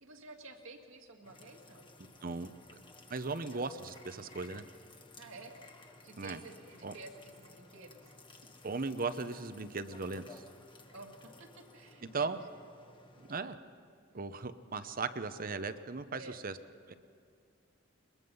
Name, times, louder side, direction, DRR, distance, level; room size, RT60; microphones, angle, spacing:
voice 1, 0.0-1.9 3.5-3.6 5.2-5.6 6.0-8.2 10.9-12.4 16.2-16.4, right 3 dB, 75° right, 2 dB, 2.2 m, -51 dB
sound 1, 1.2-13.4, left 2 dB, 25° left, 1.4 m, -56 dB
voice 2, 3.1-4.6 6.2-6.4 6.8-6.9 8.6-10.4 12.1-12.4 13.2-13.6 14.1-16.5 16.9-17.0, right 4 dB, 45° right, 11 dB, 0.8 m, -37 dB
22.0 x 21.5 x 5.5 m, 2.4 s
head